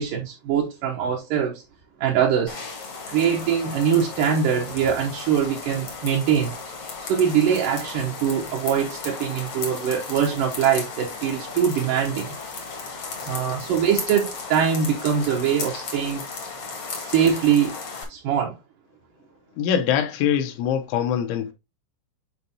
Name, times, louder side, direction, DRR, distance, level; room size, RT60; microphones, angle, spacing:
voice 1, 0.0-1.6 2.0-2.6 3.1-6.5 7.0-12.4 13.3-16.2 16.9-17.7 18.1-18.6, right 8 dB, 80° right, 1.9 m, -23 dB
sound 1, 2.5-18.0, left 4 dB, 60° left, 1.3 m, -35 dB
voice 2, 19.6-21.5, left 9 dB, 80° left, 3.1 m, -23 dB
8.0 x 4.5 x 2.7 m
omnidirectional pair, 5.5 m